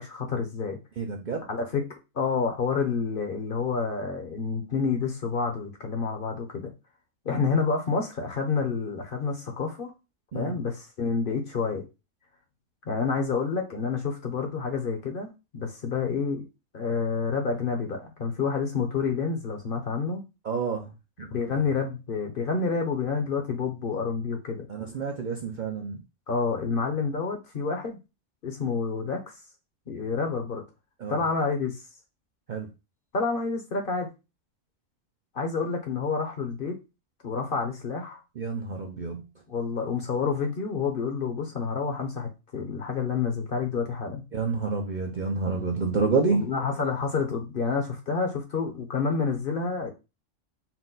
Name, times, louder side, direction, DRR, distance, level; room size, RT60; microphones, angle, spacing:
voice 1, 0.0-0.8 1.5-1.8 2.1-6.7 7.2-9.9 10.3-11.8 12.9-16.5 16.7-20.2 21.3-24.7 26.3-28.0 28.4-29.2 29.9-30.6 31.1-31.8 33.1-34.1 35.3-36.8 37.2-38.2 39.5-44.2 46.3-49.9, left 5 dB, 50° left, 4 dB, 0.9 m, -28 dB
voice 2, 1.0-1.5 10.3-10.5 20.4-20.9 21.2-21.8 24.7-26.0 31.0-31.2 32.5-32.7 38.4-39.2 44.3-46.4, right 4 dB, 50° right, 1 dB, 0.6 m, -29 dB
4.4 x 2.1 x 3.9 m, 0.26 s
omnidirectional pair, 1.3 m